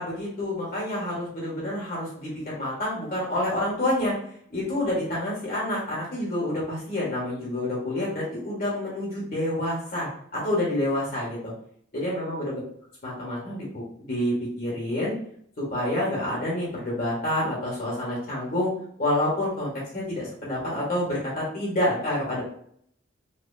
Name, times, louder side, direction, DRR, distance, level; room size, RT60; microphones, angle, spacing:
voice 1, 0.0-4.1 4.5-11.5 11.9-12.6 13.0-15.1 15.6-18.7 19.0-22.4, left 1 dB, 50° left, -5 dB, 1.5 m, -28 dB
4.2 x 2.9 x 2.7 m, 0.63 s
head